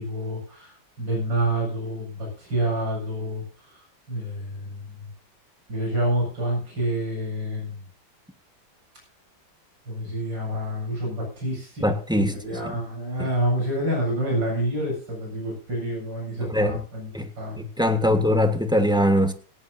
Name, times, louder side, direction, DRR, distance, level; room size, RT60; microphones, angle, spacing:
voice 1, 0.0-5.1 5.7-7.8 9.9-17.7 18.0-18.2, right 1 dB, 65° right, 8.4 m, -28 dB
voice 2, 11.8-12.4 13.2-13.3 16.5-16.8 17.1-17.3 17.6-19.3, left 1 dB, 5° right, 1.2 m, -21 dB
17.5 x 17.0 x 2.8 m
omnidirectional pair, 2.2 m